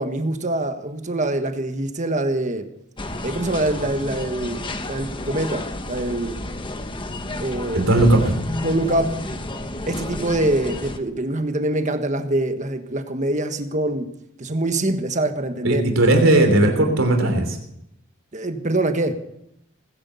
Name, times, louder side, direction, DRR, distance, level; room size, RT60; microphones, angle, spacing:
voice 1, 0.0-2.7 3.2-6.4 7.4-7.9 8.6-9.2 9.9-14.1 14.4-15.9 18.3-19.2, right 1 dB, 35° right, 1.4 m, -24 dB
sound 1, 3.0-11.0, left 1 dB, 25° left, 1.2 m, -30 dB
voice 2, 7.7-8.3 15.6-17.6, right 1 dB, 85° right, 3.2 m, -17 dB
20.0 x 10.5 x 7.0 m
head